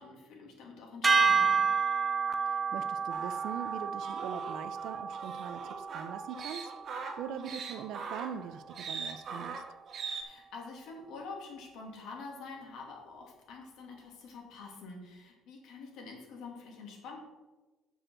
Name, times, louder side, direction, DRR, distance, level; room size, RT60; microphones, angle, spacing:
voice 1, 0.0-1.6 10.2-17.2, left 4 dB, 70° left, 0 dB, 2.6 m, -46 dB
sound 1, 1.0-7.4, right 5 dB, 20° right, 0.5 m, -30 dB
voice 2, 2.5-6.7 7.2-9.6, right 9 dB, 70° right, 13 dB, 0.6 m, -42 dB
sound 2, 3.1-10.2, right 5 dB, 45° right, 1.4 m, -42 dB
7.7 x 6.4 x 6.3 m, 1.2 s
cardioid pair, 145°, 0 cm